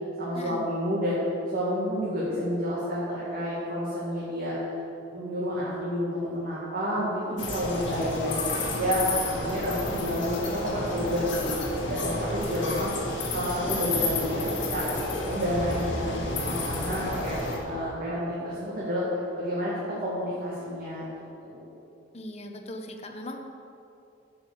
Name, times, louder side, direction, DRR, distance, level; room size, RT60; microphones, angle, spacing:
voice 1, 0.2-1.2 1.5-4.6 5.1-8.4 8.7-12.9 13.3-14.9 15.2-17.4 17.6-21.1 21.4-21.6, equal, 50° right, -8 dB, 2.1 m, -30 dB
sound 1, 7.4-17.6, left 2 dB, 65° left, 1.8 m, -31 dB
voice 2, 22.1-23.4, left 1 dB, 35° left, 4 dB, 0.9 m, -39 dB
9.4 x 6.1 x 7.0 m, 2.7 s
head